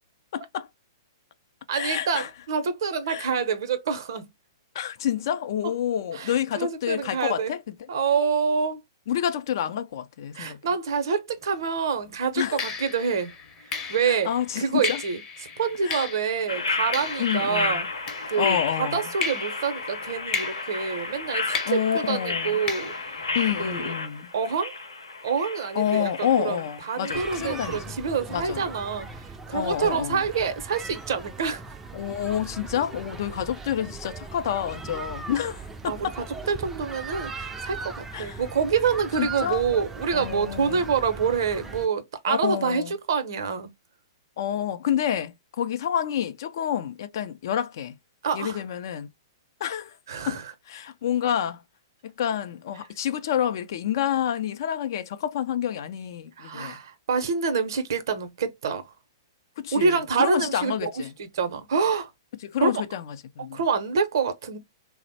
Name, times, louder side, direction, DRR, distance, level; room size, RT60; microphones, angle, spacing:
voice 1, 0.3-0.7 1.7-2.3 3.1-3.3 4.7-7.7 9.1-10.6 12.4-12.6 14.0-15.0 15.8-16.1 17.2-17.9 18.4-19.1 21.7-22.6 23.3-24.3 25.7-28.0 28.3-28.6 29.5-30.3 31.9-36.1 38.1-38.4 39.2-39.6 40.1-40.9 42.3-42.9 44.4-48.0 48.3-49.1 49.6-49.9 50.3-50.4 50.7-51.6 52.0-56.8 59.6-61.1 62.4-63.6, left 9 dB, 55° left, 0.4 m, -28 dB
voice 2, 1.7-4.3 6.1-7.5 7.9-8.8 10.3-13.3 13.9-14.3 14.6-15.2 15.6-17.8 18.3-22.9 23.6-23.9 24.3-24.8 25.2-26.6 26.9-29.1 29.5-31.6 35.9-36.1 36.5-43.7 48.2-48.6 50.1-50.4 56.4-58.9 59.7-60.9 61.2-62.1 62.6-62.7 63.5-64.6, right 5 dB, 65° right, 0.6 m, -26 dB
sound 1, 11.4-11.6 12.6-18.7 19.2-23.9, left 5 dB, 25° left, 0.7 m, -36 dB
sound 2, 16.5-27.8, left 3 dB, 90° left, 0.8 m, -32 dB
Children Playing, 27.1-41.9, right 3 dB, 10° right, 0.4 m, -39 dB
3.1 x 2.0 x 2.7 m
hypercardioid pair, 115°, 2 cm